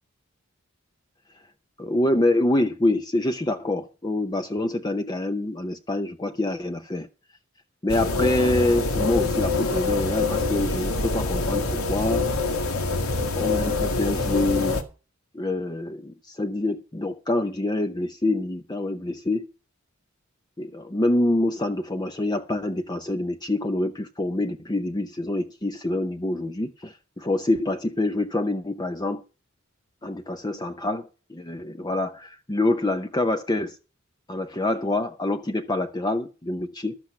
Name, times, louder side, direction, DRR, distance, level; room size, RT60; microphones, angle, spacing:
voice 1, 1.8-7.1 7.8-12.3 13.4-14.8 15.3-19.5 20.6-29.2 30.0-33.8 34.3-37.0, left 1 dB, 20° left, 0.6 m, -26 dB
sound 1, 7.9-14.8, left 3 dB, 85° left, 1.7 m, -25 dB
12.5 x 7.7 x 5.7 m
head